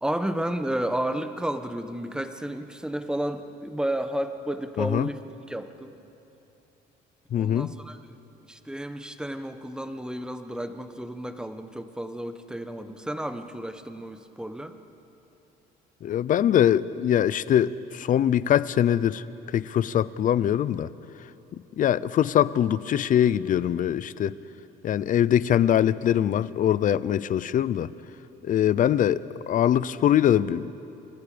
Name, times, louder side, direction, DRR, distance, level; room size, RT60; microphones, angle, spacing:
voice 1, 0.0-5.2 5.5-6.0 7.3-8.0 8.5-14.8 28.7-28.8, right 1 dB, 5° right, 8 dB, 1.3 m, -32 dB
voice 2, 4.8-5.1 7.3-7.7 16.0-20.9 21.5-24.3 24.8-27.9 28.4-29.2 29.5-30.7, left 10 dB, 50° left, 17 dB, 0.7 m, -23 dB
29.0 x 26.5 x 5.2 m, 3.0 s
cardioid pair, 110°, 17 cm